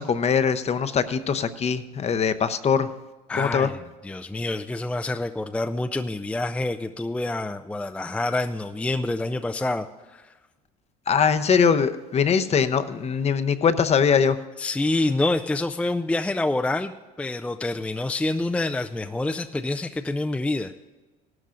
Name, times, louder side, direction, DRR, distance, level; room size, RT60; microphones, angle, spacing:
voice 1, 0.0-2.9 3.4-3.7 11.1-14.4, left 6 dB, 35° left, 11 dB, 0.7 m, -22 dB
voice 2, 3.3-9.9 10.1-10.2 14.6-20.8, left 2 dB, 5° left, 6 dB, 0.4 m, -27 dB
17.0 x 12.0 x 2.6 m, 1.2 s
supercardioid pair, 85°, 19 cm